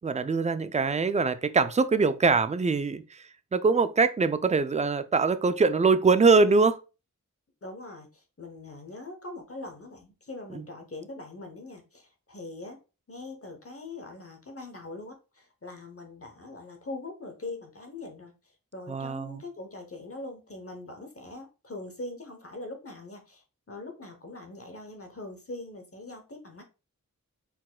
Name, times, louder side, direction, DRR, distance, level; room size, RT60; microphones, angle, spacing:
voice 1, 0.0-3.2 3.5-6.8 10.5-10.6 18.9-19.4, right 4 dB, 20° right, 0.3 m, -23 dB
voice 2, 7.6-12.8 13.1-26.6, left 2 dB, 40° left, 0.9 m, -42 dB
4.2 x 4.1 x 2.2 m
wide cardioid pair, 45°, 33 cm